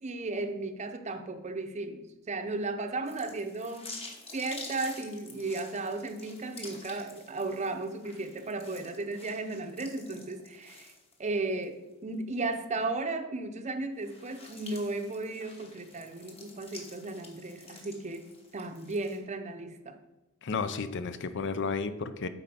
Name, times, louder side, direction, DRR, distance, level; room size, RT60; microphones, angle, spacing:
voice 1, 0.0-4.0 4.3-10.9 11.2-18.3 18.5-20.0, right 3 dB, 35° right, 7 dB, 0.6 m, -35 dB
sound 1, 3.0-11.6 12.1-12.2 13.9-19.2, left 3 dB, 30° left, 1.2 m, -49 dB
voice 2, 20.4-22.3, left 4 dB, 55° left, 11 dB, 0.5 m, -32 dB
8.6 x 4.2 x 5.4 m, 1.1 s
head